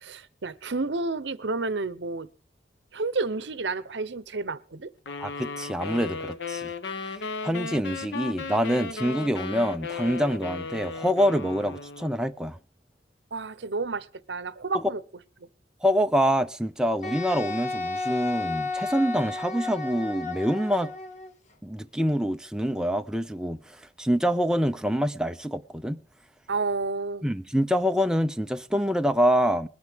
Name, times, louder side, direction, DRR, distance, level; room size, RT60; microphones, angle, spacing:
voice 1, 0.0-2.3 2.9-4.9 13.3-15.0 26.5-27.2, right 3 dB, 70° right, 0.8 m, -30 dB
sound 1, 5.1-12.2, left 4 dB, 75° left, 1.0 m, -35 dB
voice 2, 5.2-6.7 7.4-12.6 15.8-20.9 21.6-23.6 24.0-26.0 27.2-29.7, equal, 5° right, 0.5 m, -26 dB
Wind instrument woodwind instrument, 17.0-21.3, left 3 dB, 40° left, 1.3 m, -32 dB
21.5 x 9.6 x 3.6 m
head